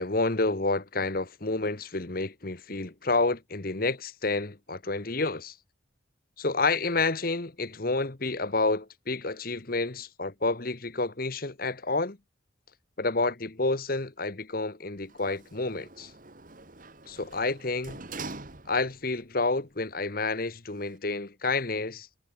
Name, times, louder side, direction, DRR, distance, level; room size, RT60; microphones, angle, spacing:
voice 1, 0.0-5.5 6.4-12.2 13.0-16.1 17.1-18.0 18.7-22.2, left 3 dB, 45° left, 1.3 m, -29 dB
Sliding door, 15.0-19.1 19.5-19.6, right 3 dB, 45° right, 2.0 m, -44 dB
head